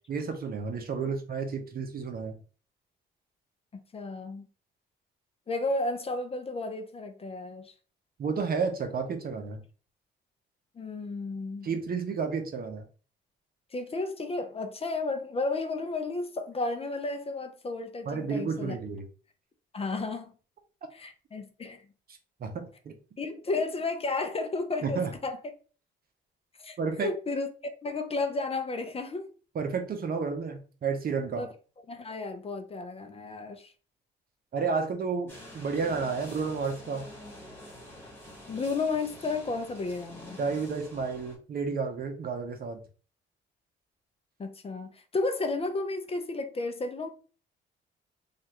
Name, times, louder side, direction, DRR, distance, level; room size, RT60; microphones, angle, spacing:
voice 1, 0.1-2.4 8.2-9.6 11.6-12.8 18.1-19.0 22.4-22.9 24.8-25.1 26.8-27.1 29.5-31.5 34.5-37.1 40.4-42.8, right 5 dB, 50° right, 0.7 m, -31 dB
voice 2, 3.9-4.5 5.5-7.7 10.8-11.7 13.7-18.8 19.7-20.3 20.9-21.8 23.2-25.4 26.6-27.5 27.8-29.3 31.4-31.5 31.9-33.7 38.5-40.4 44.4-47.1, left 3 dB, 30° left, 0.5 m, -33 dB
sound 1, 35.3-41.4, left 1 dB, 10° left, 1.7 m, -47 dB
3.1 x 2.4 x 2.9 m
cardioid pair, 90°, 20 cm